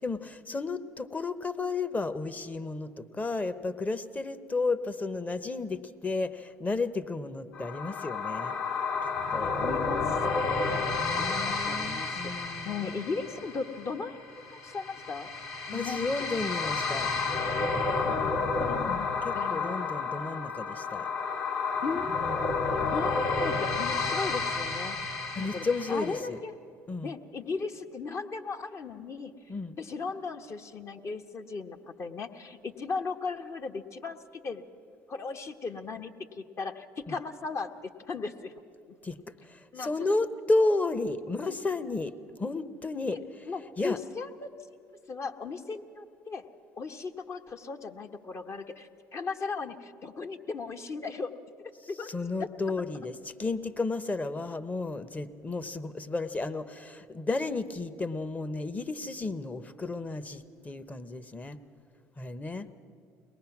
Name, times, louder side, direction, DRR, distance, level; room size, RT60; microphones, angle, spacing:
voice 1, 0.0-8.6 9.3-9.5 11.0-12.9 15.7-17.1 18.2-18.4 18.9-21.1 22.1-22.6 25.3-26.4 26.9-27.1 29.5-29.8 37.1-37.2 39.0-39.2 39.4-44.0 51.8-61.6 62.2-62.7, left 3 dB, 20° left, 13 dB, 0.9 m, -33 dB
sound 1, 7.5-26.2, left 4 dB, 60° left, 2.7 m, -31 dB
voice 2, 9.3-10.8 11.1-14.2 14.5-15.3 15.7-16.1 18.0-19.9 21.8-22.2 22.7-25.0 25.4-26.5 27.0-29.3 29.8-34.6 35.1-38.5 39.7-40.1 41.4-41.6 43.5-44.5 45.1-46.4 46.8-51.3 51.9-52.1 52.4-52.5, left 4 dB, 45° left, 6 dB, 1.2 m, -37 dB
22.5 x 19.0 x 6.0 m, 2.4 s
supercardioid pair, 75°, 7 cm